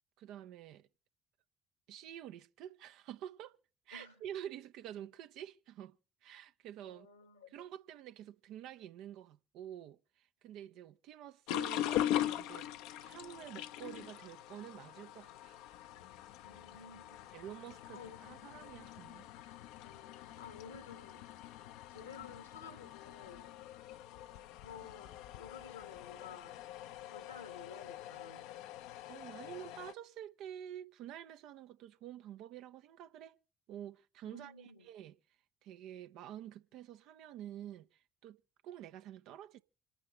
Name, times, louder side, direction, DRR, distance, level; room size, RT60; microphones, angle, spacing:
voice 1, 0.2-0.9 1.9-3.6 3.9-6.0 6.2-7.1 7.5-12.7 13.0-15.6 17.3-19.3 29.1-33.4 33.7-35.1 35.6-39.6, right 11 dB, 60° right, 0.7 m, -49 dB
voice 2, 3.9-4.2 6.8-7.5 16.4-17.3 17.9-18.2 19.8-21.3 21.9-23.5 24.6-26.6 27.0-28.5 34.2-34.9, left 6 dB, 80° left, 1.4 m, -53 dB
sound 1, 11.5-29.9, left 12 dB, 65° left, 0.6 m, -42 dB
27.0 x 9.0 x 3.2 m
figure-of-eight pair, 50°, 0 cm